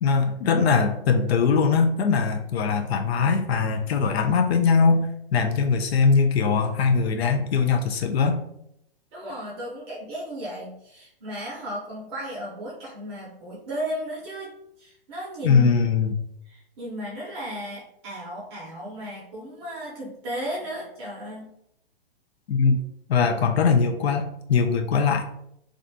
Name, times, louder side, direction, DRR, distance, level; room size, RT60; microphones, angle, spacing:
voice 1, 0.0-8.4 15.4-16.2 22.5-22.8 23.1-25.2, left 5 dB, 80° left, 5 dB, 0.5 m, -21 dB
voice 2, 9.1-15.7 16.5-21.5, equal, 25° right, -5 dB, 0.6 m, -35 dB
2.4 x 2.3 x 2.5 m, 0.76 s
hypercardioid pair, 150°, 31 cm